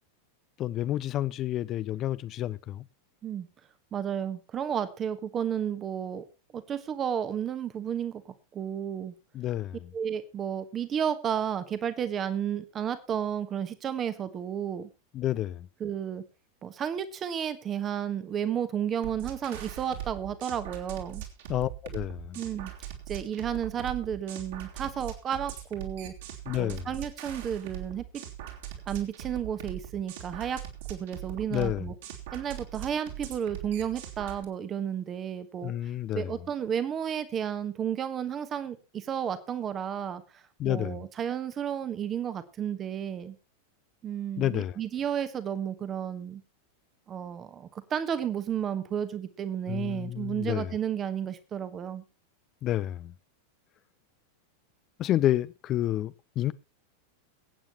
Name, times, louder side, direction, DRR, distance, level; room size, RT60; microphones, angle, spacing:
voice 1, 0.6-2.8 9.3-9.8 15.1-15.7 21.5-22.4 26.5-26.9 31.5-31.9 35.6-36.3 40.6-41.0 44.4-44.8 49.7-50.7 52.6-53.1 55.0-56.5, left 13 dB, 35° left, 0.5 m, -29 dB
voice 2, 3.9-6.2 6.5-9.1 9.9-14.9 15.8-16.2 16.6-21.2 22.3-22.7 23.1-26.1 26.6-28.1 28.9-30.6 30.9-31.9 32.3-43.3 44.0-46.4 47.1-52.0, right 8 dB, 25° right, 1.2 m, -32 dB
sound 1, 19.0-34.4, right 11 dB, 55° right, 3.2 m, -41 dB
22.0 x 8.9 x 3.0 m
figure-of-eight pair, 90°, 0 cm